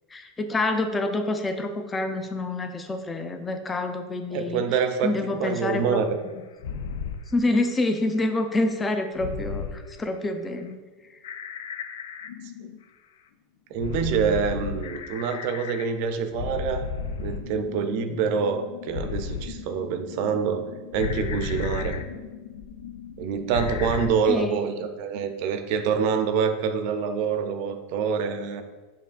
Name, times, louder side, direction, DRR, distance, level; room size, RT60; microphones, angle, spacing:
voice 1, 0.1-4.7 5.0-6.0 7.3-10.8 11.1-11.2 24.3-24.6, left 2 dB, 20° left, 6 dB, 0.5 m, -27 dB
voice 2, 4.3-6.2 13.7-16.9 17.2-22.0 23.2-28.6, right 6 dB, 60° right, 8 dB, 0.5 m, -26 dB
sound 1, 6.6-7.2 9.2-9.8 11.2-12.8 13.8-15.9 16.3-24.1, left 5 dB, 75° left, 0.3 m, -34 dB
6.6 x 2.7 x 2.4 m, 1.3 s
hypercardioid pair, 90°, 0 cm